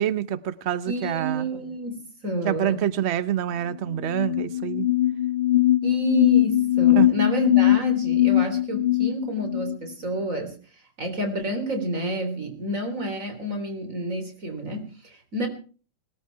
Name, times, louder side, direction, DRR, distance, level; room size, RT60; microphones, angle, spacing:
voice 1, 0.0-1.4 2.4-4.9 7.0-7.1, right 10 dB, 90° right, 15 dB, 0.5 m, -26 dB
voice 2, 0.9-2.9 5.8-10.6 11.0-15.5, right 1 dB, 35° right, 6 dB, 4.0 m, -30 dB
sound 1, 3.7-3.8 4.0-9.8, left 14 dB, 25° left, 1.7 m, -21 dB
20.0 x 13.5 x 4.6 m, 0.40 s
omnidirectional pair, 2.4 m